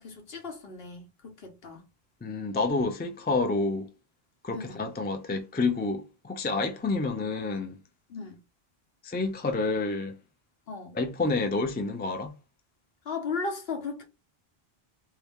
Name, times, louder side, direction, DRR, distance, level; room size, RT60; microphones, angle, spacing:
voice 1, 0.0-1.9 4.5-4.8 8.1-8.4 10.7-11.0 13.0-14.0, left 4 dB, 70° left, 1.2 m, -36 dB
voice 2, 2.2-3.9 4.4-7.8 9.0-10.2 10.9-12.3, left 3 dB, 15° left, 0.3 m, -29 dB
3.5 x 2.8 x 3.5 m
omnidirectional pair, 1.0 m